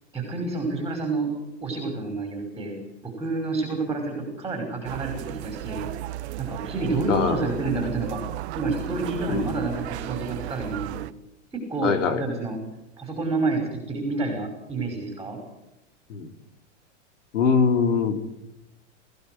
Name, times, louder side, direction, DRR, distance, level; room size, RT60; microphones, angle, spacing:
voice 1, 0.1-1.3 1.6-5.9 6.4-8.2 8.6-11.0 11.5-12.6 13.0-15.4, right 3 dB, 10° right, 2 dB, 5.6 m, -29 dB
sound 1, 4.8-11.1, right 15 dB, 60° right, 1.2 m, -34 dB
voice 2, 7.1-7.5 9.3-9.5 11.8-12.2 16.1-16.3 17.3-18.3, left 5 dB, 85° left, 8 dB, 3.4 m, -23 dB
24.0 x 16.0 x 8.0 m, 0.92 s
supercardioid pair, 135°, 36 cm